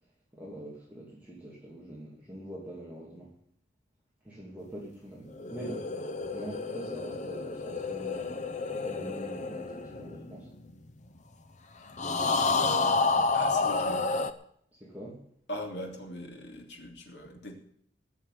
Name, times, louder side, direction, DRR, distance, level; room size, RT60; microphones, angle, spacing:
voice 1, 0.3-3.3 4.2-5.9 6.3-10.6 12.7-13.2 14.8-15.2, right 1 dB, 10° right, -6 dB, 2.8 m, -44 dB
sound 1, 5.3-10.9 12.0-14.3, left 3 dB, 40° left, 0.8 m, -30 dB
voice 2, 12.5-13.1 13.3-14.1 15.5-17.5, equal, 70° left, 1 dB, 3.2 m, -41 dB
16.0 x 6.6 x 9.3 m, 0.67 s
head